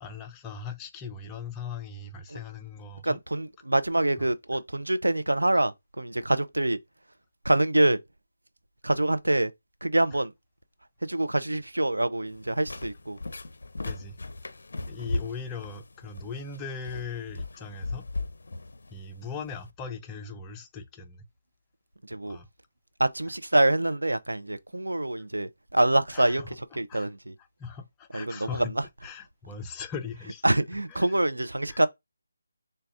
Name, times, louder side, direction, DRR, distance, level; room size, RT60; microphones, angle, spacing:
voice 1, 0.0-3.2 4.2-4.3 13.8-14.2 14.9-18.1 18.9-21.2 22.3-22.5 25.2-25.3 26.1-26.5 26.9-27.1 27.6-28.7 29.0-30.4 30.9-31.2 31.7-31.9, left 5 dB, 15° left, 0.4 m, -39 dB
voice 2, 3.0-6.8 7.4-8.0 8.8-9.5 9.8-10.3 11.0-13.2 22.0-22.4 23.0-27.3 28.1-28.7 30.4-31.9, right 1 dB, 90° right, 0.5 m, -25 dB
sound 1, 12.3-19.7, left 2 dB, 65° left, 0.5 m, -37 dB
6.5 x 2.3 x 2.5 m
figure-of-eight pair, 160°, 0 cm